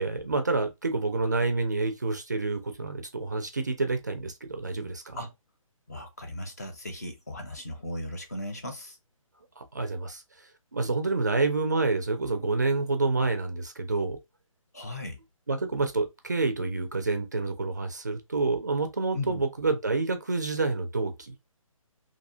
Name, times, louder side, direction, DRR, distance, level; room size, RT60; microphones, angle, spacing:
voice 1, 0.0-5.2 9.6-10.2 10.7-14.2 15.5-21.3, right 3 dB, 30° right, 0.4 m, -28 dB
voice 2, 5.9-9.0 14.7-15.2 19.1-19.4, left 1 dB, 30° left, 0.5 m, -37 dB
2.6 x 2.0 x 2.6 m
hypercardioid pair, 170°, 18 cm